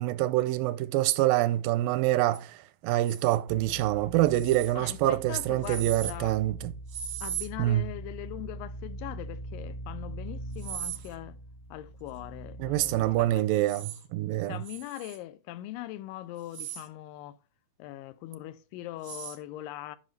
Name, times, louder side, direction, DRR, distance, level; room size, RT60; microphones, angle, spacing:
voice 1, 0.0-6.7 7.6-7.9 12.6-14.6, right 15 dB, 90° right, 2.3 m, -26 dB
sound 1, 2.3-2.4 3.0-3.4 4.2-4.7 5.6-6.1 6.9-7.5 10.5-11.1 13.5-14.0 14.6-15.2 16.4-16.9 19.0-19.4, right 9 dB, 70° right, 1.4 m, -38 dB
sound 2, 3.5-13.4, right 1 dB, 35° left, 0.9 m, -42 dB
voice 2, 4.8-6.3 7.2-11.4 11.7-13.3 13.6-13.7 14.5-17.4 17.8-20.0, left 14 dB, 85° left, 2.3 m, -41 dB
11.5 x 5.6 x 3.2 m
omnidirectional pair, 4.0 m